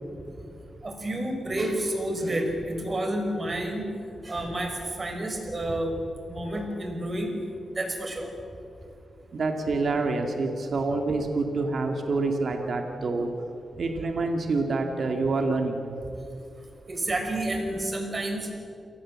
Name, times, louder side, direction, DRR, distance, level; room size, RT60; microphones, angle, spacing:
voice 1, 0.8-3.9 4.2-6.0 6.3-7.4 7.7-8.3 16.9-18.5, right 1 dB, 35° right, 4 dB, 5.5 m, -30 dB
voice 2, 9.3-13.3 13.8-15.8, right 3 dB, 60° right, 4 dB, 2.2 m, -27 dB
29.0 x 18.5 x 7.6 m, 2.7 s
cardioid pair, 85°, 0 cm